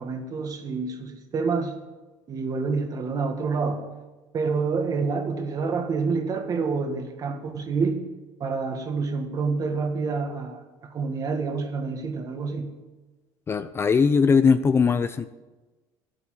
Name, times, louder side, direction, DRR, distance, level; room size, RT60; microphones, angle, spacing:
voice 1, 0.0-1.7 2.3-3.8 4.3-8.0 8.4-12.7, right 4 dB, 40° right, 6 dB, 1.7 m, -28 dB
voice 2, 13.5-15.3, left 5 dB, 25° left, 12 dB, 0.5 m, -20 dB
11.0 x 8.2 x 7.5 m, 1.2 s
cardioid pair, 110°, 10 cm